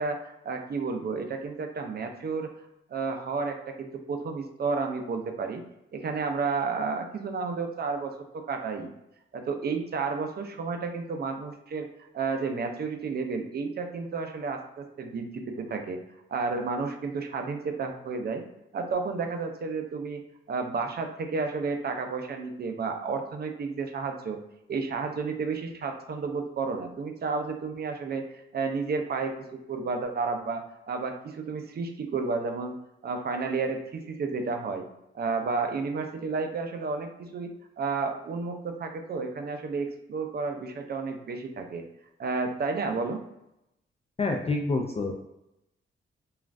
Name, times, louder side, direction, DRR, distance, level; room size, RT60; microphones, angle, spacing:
voice 1, 0.0-2.5 2.9-5.6 5.9-8.9 9.3-11.9 12.1-16.0 16.3-18.4 18.7-24.4 24.7-32.8 33.0-34.8 35.1-41.8 42.2-43.2, right 4 dB, 50° right, 5 dB, 0.5 m, -31 dB
voice 2, 44.2-45.1, left 3 dB, 30° left, 1 dB, 0.4 m, -27 dB
3.0 x 2.4 x 2.5 m, 0.84 s
cardioid pair, 90°, 21 cm